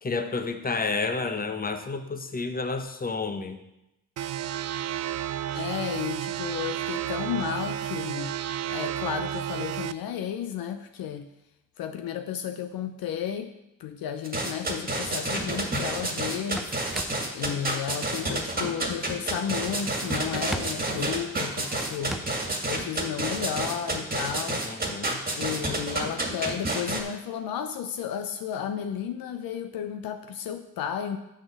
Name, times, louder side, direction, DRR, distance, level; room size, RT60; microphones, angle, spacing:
voice 1, 0.0-3.6 24.6-25.2, left 4 dB, 25° left, 8 dB, 1.0 m, -30 dB
sound 1, 4.2-9.9, right 11 dB, 45° right, 0.5 m, -32 dB
voice 2, 5.5-8.4 8.7-11.3 11.8-13.5 13.8-16.6 17.3-22.2 22.7-24.6 25.4-31.2, left 9 dB, 65° left, 8 dB, 0.7 m, -33 dB
sound 2, 14.2-27.0, right 2 dB, 25° right, 2.0 m, -29 dB
sound 3, 16.6-17.4 19.6-20.3 20.5-21.0 21.5-22.6, equal, ahead, 0.6 m, -38 dB
6.5 x 5.8 x 6.1 m, 0.91 s
hypercardioid pair, 55°, 39 cm